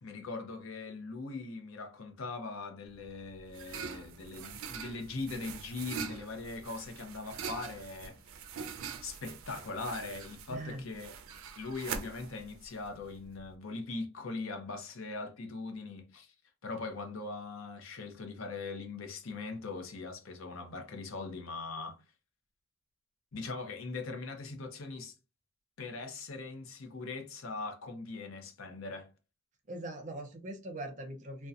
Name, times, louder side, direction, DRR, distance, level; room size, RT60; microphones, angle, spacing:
voice 1, 0.0-8.2 9.0-11.1 11.6-16.3 16.6-22.0 23.3-25.1 25.8-29.1, left 3 dB, 75° left, 0.6 m, -41 dB
sound 1, 2.9-13.5, right 6 dB, 85° right, 0.4 m, -44 dB
voice 2, 10.5-10.8 29.7-31.5, right 1 dB, 35° right, 0.5 m, -41 dB
2.7 x 2.1 x 2.4 m
head